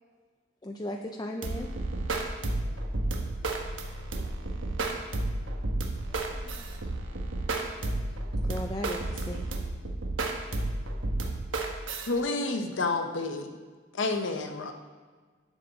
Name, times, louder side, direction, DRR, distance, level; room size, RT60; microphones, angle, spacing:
voice 1, 0.6-1.7 8.4-9.4, left 1 dB, 20° left, 2 dB, 0.5 m, -36 dB
sound 1, 1.4-12.1, right 2 dB, 90° right, 1.1 m, -31 dB
voice 2, 2.5-5.6 6.1-7.3 7.7-8.3, equal, 5° left, -2 dB, 1.3 m, -60 dB
voice 3, 12.1-13.5 13.9-14.7, left 3 dB, 75° left, 5 dB, 0.8 m, -29 dB
10.0 x 7.3 x 4.0 m, 1.4 s
head